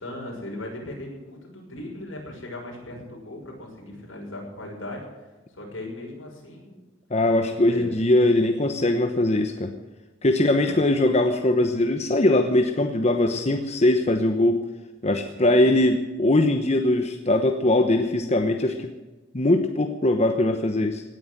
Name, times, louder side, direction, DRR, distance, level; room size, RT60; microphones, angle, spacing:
voice 1, 0.0-5.0 5.5-6.8 7.6-8.0 10.6-10.7 15.3-15.6, left 1 dB, 75° left, -1 dB, 6.3 m, -38 dB
voice 2, 7.1-9.7 10.2-14.6 15.0-18.9 19.3-21.0, left 1 dB, 35° left, 5 dB, 1.0 m, -21 dB
17.5 x 9.7 x 7.8 m, 1.2 s
head